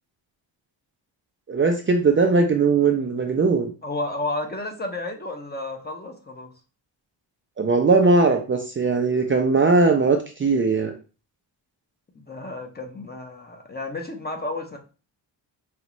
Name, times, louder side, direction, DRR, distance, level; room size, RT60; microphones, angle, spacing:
voice 1, 1.5-3.7 7.6-10.9, right 4 dB, 25° right, 3 dB, 0.5 m, -19 dB
voice 2, 3.8-6.5 12.1-14.8, left 2 dB, 20° left, 3 dB, 0.8 m, -32 dB
5.3 x 2.4 x 3.0 m, 0.34 s
cardioid pair, 95°, 45 cm